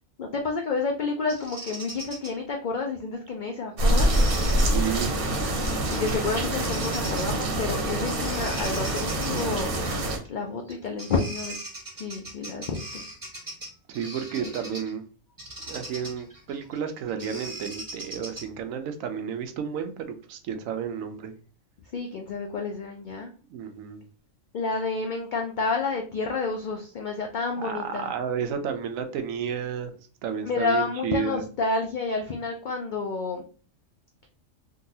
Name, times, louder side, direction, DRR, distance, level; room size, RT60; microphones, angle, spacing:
voice 1, 0.2-4.1 5.9-9.7 10.3-11.6 12.0-13.0 14.4-14.5 21.9-23.3 24.5-28.1 30.4-33.4, left 4 dB, 70° left, 0.4 m, -29 dB
Bird vocalization bird call bird song, 1.3-2.3 4.0-4.7 5.9-6.2 6.6-7.3 8.1-9.5 10.7-10.8 11.0-14.9 15.4-18.6, right 1 dB, 25° right, 0.5 m, -40 dB
sound 1, 3.8-10.2, right 1 dB, 50° right, 0.9 m, -25 dB
voice 2, 4.5-5.2 13.9-15.0 15.7-21.3 23.5-24.0 27.6-29.9 30.2-31.5, right 7 dB, 90° right, 1.0 m, -32 dB
3.7 x 2.3 x 2.7 m
omnidirectional pair, 1.3 m